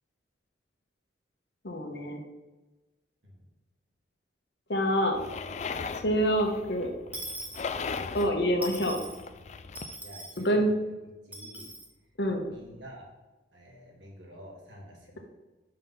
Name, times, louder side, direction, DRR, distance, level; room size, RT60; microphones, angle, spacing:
voice 1, 1.6-2.2 4.7-5.2 6.0-6.9 8.1-9.0 10.4-10.7 12.2-12.4, equal, 65° left, 3 dB, 1.2 m, -26 dB
sound 1, 5.1-10.0, left 5 dB, 40° left, 0.3 m, -38 dB
Dishes pots and pans / Coin (dropping), 7.1-8.2 8.6-9.2 9.7-10.5 11.3-11.9, right 1 dB, 10° right, 0.9 m, -41 dB
voice 2, 10.0-10.7 11.2-11.7 12.5-13.1 13.5-15.2, equal, 80° right, -2 dB, 2.2 m, -48 dB
5.6 x 5.5 x 5.6 m, 1.1 s
head